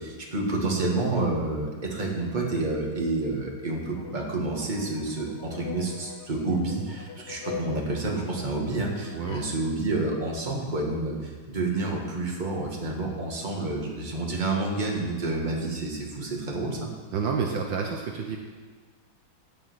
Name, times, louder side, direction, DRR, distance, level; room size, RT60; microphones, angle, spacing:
voice 1, 0.0-16.9, right 2 dB, 25° right, -1 dB, 1.9 m, -29 dB
sound 1, 3.9-9.6, left 7 dB, 75° left, 0.6 m, -43 dB
voice 2, 17.1-18.4, right 5 dB, 70° right, 2 dB, 1.6 m, -29 dB
16.0 x 5.5 x 6.2 m, 1.4 s
omnidirectional pair, 2.2 m